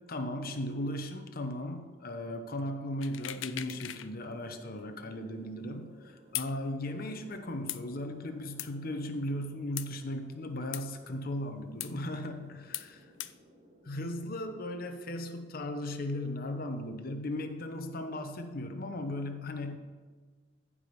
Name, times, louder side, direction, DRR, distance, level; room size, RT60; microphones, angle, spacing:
voice 1, 0.1-13.1 13.9-19.8, left 1 dB, 50° left, 6 dB, 0.9 m, -37 dB
sound 1, 3.0-4.1 4.4-4.5 6.3-6.5 7.7-7.8 8.6-8.7 9.8-9.9 10.7-10.8 11.8-11.9 12.7-12.9 13.2-13.3, left 14 dB, 75° left, 0.4 m, -38 dB
sound 2, 3.5-14.2, left 1 dB, 50° right, 2.4 m, -59 dB
14.5 x 4.9 x 5.2 m, 1.5 s
head